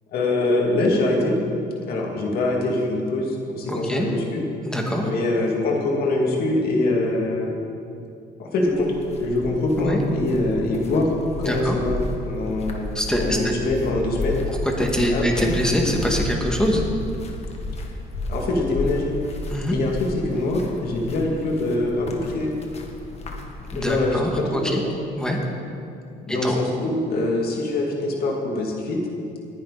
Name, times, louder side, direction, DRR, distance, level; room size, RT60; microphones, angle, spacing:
voice 1, 0.1-1.4 1.9-4.4 5.0-7.5 8.4-8.9 9.2-11.1 11.4-12.0 12.2-12.9 13.2-14.4 15.0-15.5 18.3-19.1 19.7-22.5 23.8-24.9 26.3-29.0, left 2 dB, 65° left, 0 dB, 2.7 m, -24 dB
voice 2, 3.7-4.1 4.7-5.1 9.8-10.0 11.4-11.8 12.9-13.5 14.8-16.8 19.5-19.7 23.7-24.8 25.2-25.4 26.3-26.5, equal, 5° left, 0 dB, 2.2 m, -24 dB
sound 1, 8.6-24.1, left 2 dB, 40° left, 1.7 m, -33 dB
19.5 x 10.5 x 4.3 m, 2.5 s
cardioid pair, 110°, 17 cm